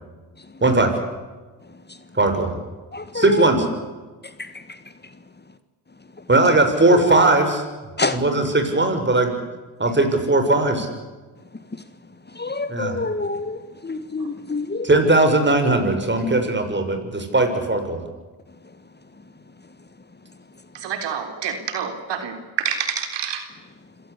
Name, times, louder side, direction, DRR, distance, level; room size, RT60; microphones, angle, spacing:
voice 1, 0.6-1.0 2.1-2.5 3.1-3.7 6.3-7.6 8.1-9.4 9.8-10.9 12.7-12.9 14.8-18.0, right 2 dB, 25° right, 6.9 m, -18 dB
voice 2, 2.9-3.5 4.4-4.8 6.9-7.1 8.0-8.2 12.3-14.9, left 3 dB, 25° left, 1.7 m, -27 dB
voice 3, 20.7-23.4, right 7 dB, 75° right, 3.8 m, -27 dB
26.0 x 17.5 x 8.4 m
supercardioid pair, 60°, 43 cm